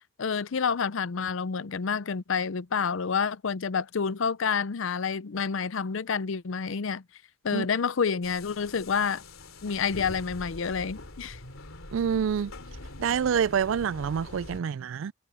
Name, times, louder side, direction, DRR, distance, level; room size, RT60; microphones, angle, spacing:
voice 1, 0.2-7.0 7.4-9.2 9.6-11.4, left 6 dB, 70° left, 0.5 m, -28 dB
sound 1, 8.2-14.6, left 2 dB, 85° left, 3.1 m, -44 dB
voice 2, 11.9-12.5 13.0-15.1, right 7 dB, 70° right, 0.3 m, -27 dB
head